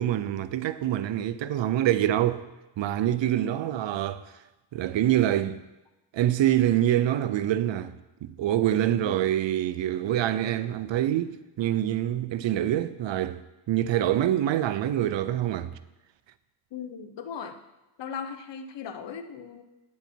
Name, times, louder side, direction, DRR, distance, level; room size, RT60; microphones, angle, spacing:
voice 1, 0.0-2.4 2.8-4.2 4.7-5.6 6.1-7.9 8.2-13.4 13.7-15.7, right 12 dB, 80° right, 0.7 m, -25 dB
voice 2, 3.4-3.9 9.0-9.2 16.7-17.6 18.0-19.6, left 6 dB, 70° left, 1.0 m, -38 dB
9.3 x 8.6 x 4.5 m
cardioid pair, 75°, 44 cm